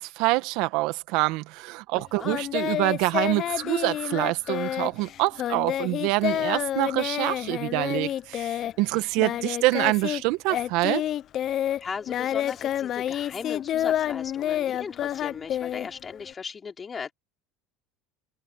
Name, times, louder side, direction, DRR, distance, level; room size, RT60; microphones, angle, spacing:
voice 1, 0.0-11.0, right 21 dB, 70° right, 1.8 m, -26 dB
voice 2, 1.9-2.4 9.1-9.2 11.8-17.1, left 6 dB, 30° left, 3.3 m, -38 dB
Singing, 2.3-10.2 10.5-16.3, left 11 dB, 50° left, 0.9 m, -29 dB
supercardioid pair, 95°, 0 cm